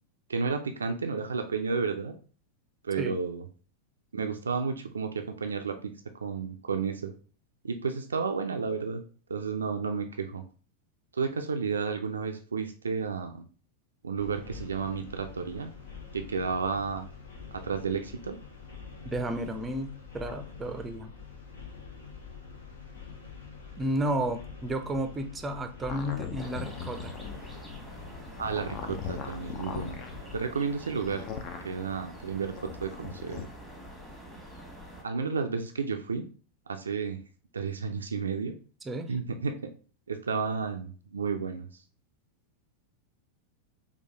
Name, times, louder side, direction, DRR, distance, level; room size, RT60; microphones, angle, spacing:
voice 1, 0.3-2.2 2.8-3.4 4.1-7.1 7.6-9.0 9.3-10.4 11.1-13.5 14.0-15.7 16.1-17.1 17.5-18.4 28.4-30.0 30.3-31.3 31.6-33.4 35.0-36.3 36.7-37.2 37.5-38.5 39.1-39.6 40.1-41.7, right 5 dB, 70° right, 6 dB, 0.4 m, -32 dB
sound 1, 14.2-30.4, left 5 dB, 70° left, 0.9 m, -46 dB
voice 2, 19.0-21.1 23.8-27.1 38.9-39.1, right 1 dB, 15° right, 7 dB, 0.5 m, -32 dB
sound 2, 25.8-27.4 28.3-30.1 31.0-31.7 32.5-33.5, left 7 dB, 40° left, 0.6 m, -39 dB
sound 3, 26.4-35.0, equal, 10° left, 1.2 m, -46 dB
4.7 x 2.3 x 3.3 m, 0.39 s
figure-of-eight pair, 90°, 0 cm